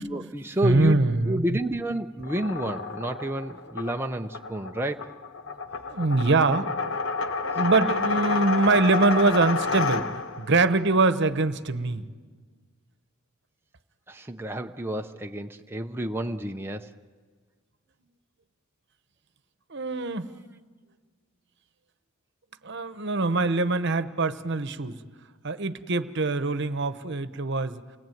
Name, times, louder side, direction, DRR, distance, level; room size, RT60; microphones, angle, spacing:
voice 1, 0.0-5.1 14.1-16.9, right 1 dB, 10° right, 4 dB, 0.7 m, -30 dB
voice 2, 0.6-1.6 5.9-6.7 7.4-10.1 10.4-12.1 19.7-20.3 22.6-25.0 25.4-27.8, right 3 dB, 60° right, 12 dB, 1.1 m, -23 dB
sound 1, 2.2-10.5, left 4 dB, 65° left, 1.3 m, -30 dB
29.0 x 20.0 x 9.3 m, 1.5 s
head